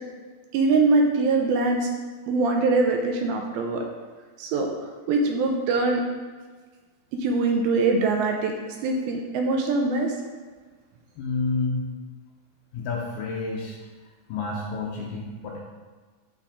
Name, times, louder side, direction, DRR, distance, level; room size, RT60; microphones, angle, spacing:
voice 1, 0.5-1.9 2.3-3.8 4.4-6.1 7.1-10.1, right 3 dB, 75° right, 2 dB, 2.4 m, -23 dB
voice 2, 11.2-11.9 12.7-13.8 14.3-15.6, left 3 dB, 75° left, -2 dB, 2.1 m, -29 dB
8.8 x 7.2 x 3.6 m, 1.4 s
omnidirectional pair, 4.7 m